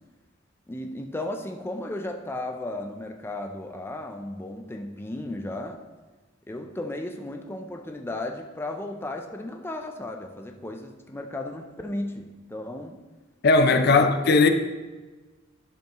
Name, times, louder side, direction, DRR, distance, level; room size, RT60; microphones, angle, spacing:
voice 1, 0.7-5.8 6.5-13.0 13.8-14.5, left 1 dB, 10° left, 0.5 m, -35 dB
voice 2, 13.4-14.5, left 3 dB, 55° left, 0.6 m, -18 dB
10.5 x 6.9 x 3.0 m
head